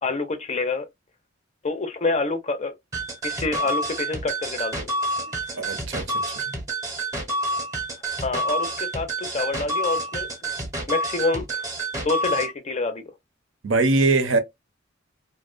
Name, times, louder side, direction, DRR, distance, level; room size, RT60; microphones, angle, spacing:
voice 1, 0.0-0.9 1.6-2.7 3.2-4.9 8.2-10.3 10.9-11.7 12.0-13.0, left 3 dB, 35° left, 0.5 m, -27 dB
sound 1, 2.9-12.5, right 1 dB, 15° right, 0.7 m, -28 dB
voice 2, 5.5-6.4 13.6-14.4, right 3 dB, 70° right, 0.6 m, -22 dB
2.5 x 2.1 x 2.3 m
head